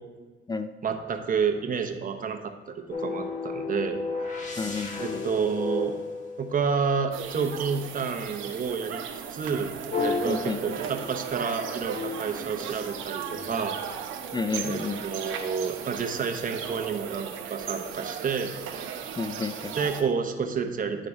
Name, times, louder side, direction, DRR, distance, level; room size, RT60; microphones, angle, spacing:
voice 1, 0.8-2.7 3.0-4.0 5.0-6.0 6.4-9.0 9.3-9.7 10.0-13.2 13.5-13.8 14.6-18.5 19.8-21.1, right 6 dB, 45° right, 5 dB, 0.9 m, -29 dB
sound 1, 2.9-7.1 9.9-11.4 11.9-13.7, left 4 dB, 40° left, 1.3 m, -34 dB
voice 2, 4.6-5.2 10.2-10.8 14.3-15.0 19.2-19.7, left 4 dB, 20° left, 9 dB, 0.4 m, -31 dB
sound 2, 7.1-20.0, right 7 dB, 85° right, 0.8 m, -36 dB
9.8 x 3.8 x 4.8 m, 1.4 s
cardioid pair, 90°, 20 cm